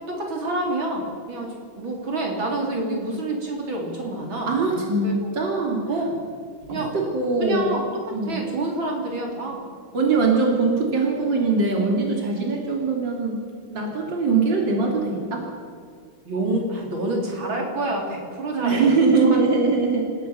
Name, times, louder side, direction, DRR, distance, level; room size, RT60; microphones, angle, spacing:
voice 1, 0.1-4.6 5.0-5.3 5.9-6.2 6.7-6.9 7.4-7.8 8.3-9.6 16.2-18.9, right 2 dB, 90° right, 0 dB, 4.6 m, -27 dB
voice 2, 4.5-5.8 6.7-7.7 8.1-8.4 9.9-13.4 13.7-15.4 18.5-20.1, right 4 dB, 70° right, 0 dB, 3.9 m, -22 dB
27.0 x 15.5 x 8.3 m, 2.1 s
omnidirectional pair, 2.1 m